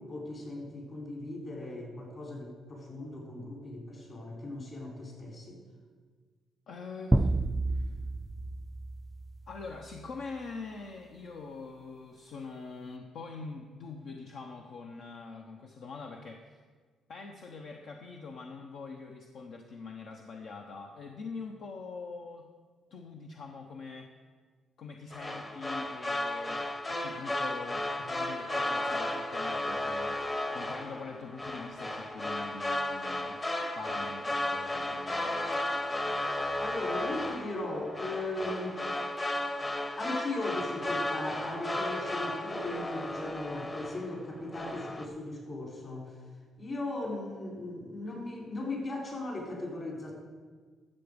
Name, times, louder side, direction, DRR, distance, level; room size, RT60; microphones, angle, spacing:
voice 1, 0.0-5.6 36.6-38.8 39.8-46.1 46.6-50.1, left 2 dB, 45° left, 0 dB, 3.7 m, -38 dB
voice 2, 6.7-7.3 7.7-7.9 9.5-16.6 17.1-22.5 22.9-24.1 24.8-35.4, left 4 dB, 70° left, 2 dB, 0.9 m, -44 dB
sound 1, 7.1-9.9, right 2 dB, 15° right, 0.3 m, -30 dB
sound 2, 25.1-44.2 44.5-45.1, left 1 dB, 25° left, 1.0 m, -34 dB
13.0 x 7.1 x 5.2 m, 1.5 s
cardioid pair, 90°, 0 cm